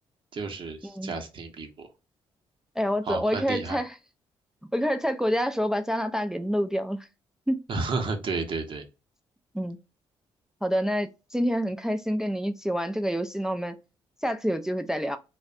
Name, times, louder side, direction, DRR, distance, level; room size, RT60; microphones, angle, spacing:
voice 1, 0.3-1.9 3.1-3.8 7.7-8.8, right 4 dB, 50° right, 0.7 m, -32 dB
voice 2, 2.8-4.0 4.7-7.1 7.5-7.6 9.5-9.8 10.6-13.8 14.2-15.2, equal, 5° right, 0.3 m, -27 dB
2.6 x 2.1 x 2.4 m
supercardioid pair, 65°, 11 cm